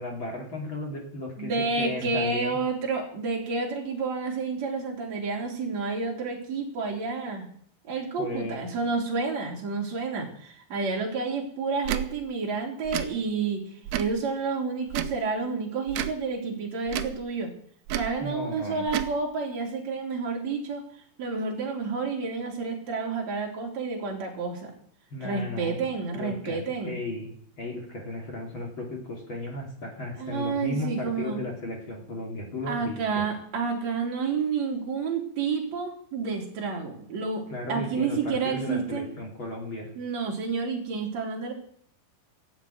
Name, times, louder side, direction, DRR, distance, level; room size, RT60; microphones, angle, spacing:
voice 1, 0.0-2.6 8.2-8.6 18.2-18.9 25.1-25.8 26.1-27.3 27.6-33.3 37.5-39.9, left 2 dB, 35° left, 0 dB, 3.0 m, -35 dB
voice 2, 1.4-7.5 7.9-13.6 14.0-17.5 17.9-20.8 21.2-24.7 25.2-27.0 30.2-31.4 32.7-37.4 37.7-39.1 40.0-41.5, right 4 dB, 50° right, -1 dB, 4.0 m, -30 dB
Tick / Tick-tock, 11.8-12.1 12.8-13.1 13.8-14.2 14.9-15.2 15.9-16.2 16.9-17.2 17.9-18.1 18.9-19.1, right 11 dB, 75° right, 1.8 m, -30 dB
13.5 x 7.7 x 9.3 m, 0.63 s
omnidirectional pair, 4.3 m